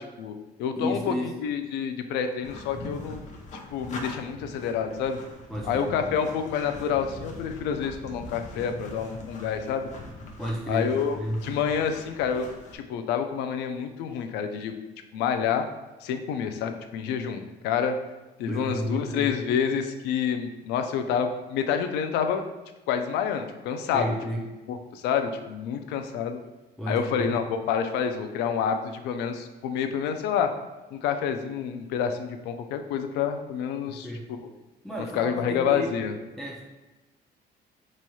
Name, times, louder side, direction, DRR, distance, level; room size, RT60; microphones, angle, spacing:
voice 1, 0.0-1.1 1.4-3.2 3.7-5.2 5.7-9.9 10.7-12.5 12.7-14.7 15.1-15.6 16.0-18.0 18.4-22.4 22.9-24.0 24.7-26.4 26.9-30.5 30.9-34.1 35.1-36.1, left 7 dB, 90° left, 7 dB, 0.4 m, -28 dB
voice 2, 0.8-1.3 5.5-5.9 10.4-11.4 18.5-19.3 23.9-24.4 26.8-27.3 33.9-34.3 34.8-35.9 36.4-36.6, equal, ahead, -3 dB, 0.4 m, -32 dB
sound 1, 2.4-12.8, left 2 dB, 45° left, 0.6 m, -42 dB
4.1 x 3.1 x 2.3 m, 1.1 s
cardioid pair, 110°, 17 cm